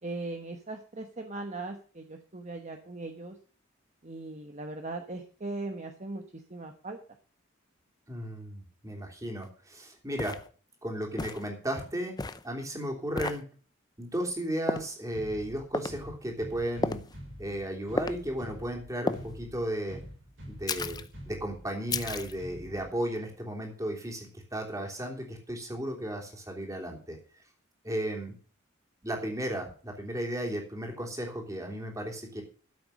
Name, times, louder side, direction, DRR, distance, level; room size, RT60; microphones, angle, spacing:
voice 1, 0.0-3.4 4.0-7.0, right 2 dB, 35° right, 5 dB, 1.2 m, -39 dB
voice 2, 8.1-10.4 10.8-12.1 12.4-13.4 14.0-17.0 17.4-20.0 20.5-27.2 27.8-28.3 29.0-32.4, right 1 dB, 15° right, 1 dB, 3.2 m, -35 dB
sound 1, 9.4-9.5 10.2-10.5 11.2-11.5 12.2-12.4 13.2-13.4 14.7-14.9 15.7-16.0 16.8-17.1 18.0-18.2 19.1-19.3 20.7-21.1 21.9-22.3, left 3 dB, 20° left, 0.6 m, -32 dB
sound 2, 15.1-23.1, equal, 65° right, 5.7 m, -46 dB
13.0 x 7.8 x 6.5 m, 0.40 s
head